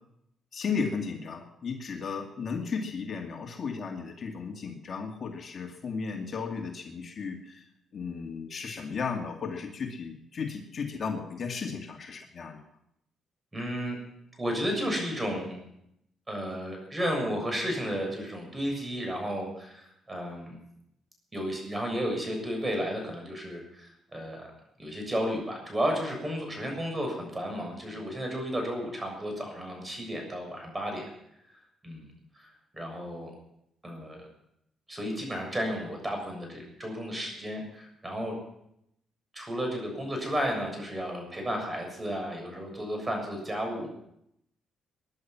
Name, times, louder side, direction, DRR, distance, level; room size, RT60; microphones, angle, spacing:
voice 1, 0.5-12.6, left 5 dB, 45° left, 2 dB, 2.4 m, -35 dB
voice 2, 13.5-14.0 14.4-15.6 16.3-20.6 21.3-24.5 24.8-31.1 31.5-31.6 31.8-32.1 32.3-33.3 33.8-34.2 34.9-38.4 39.3-43.9, equal, 20° right, 2 dB, 7.0 m, -33 dB
21.5 x 11.0 x 6.1 m, 0.77 s
cardioid pair, 90°, 0 cm